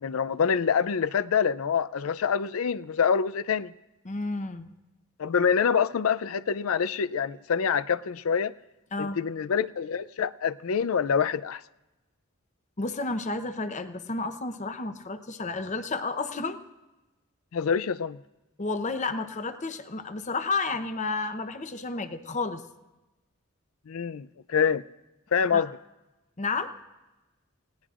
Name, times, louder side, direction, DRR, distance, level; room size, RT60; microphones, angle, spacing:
voice 1, 0.0-3.7 5.2-8.5 9.0-11.6 17.5-18.2 23.9-24.8 25.3-25.7, left 6 dB, 80° left, 0.4 m, -26 dB
voice 2, 4.0-4.7 8.9-9.2 12.8-16.6 18.6-22.6 25.5-25.7 26.4-26.7, left 3 dB, 35° left, 0.8 m, -31 dB
29.5 x 17.5 x 2.5 m
head